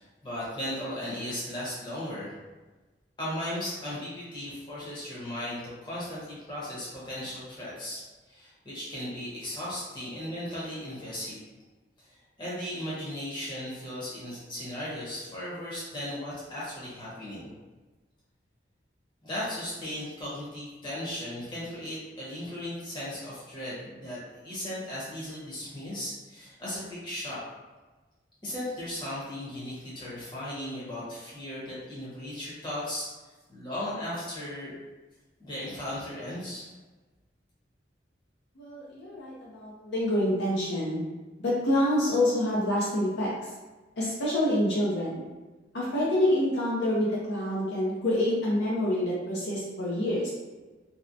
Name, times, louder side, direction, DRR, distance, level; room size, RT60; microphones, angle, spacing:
voice 1, 0.0-2.4 3.2-11.4 12.0-17.5 19.2-27.4 28.4-33.1 33.5-34.8 35.4-36.7, left 1 dB, 25° left, -9 dB, 0.9 m, -36 dB
voice 2, 38.6-41.0 41.4-43.5 44.0-45.2 45.7-50.3, left 1 dB, 65° left, -6 dB, 0.5 m, -27 dB
2.7 x 2.0 x 2.5 m, 1.2 s
head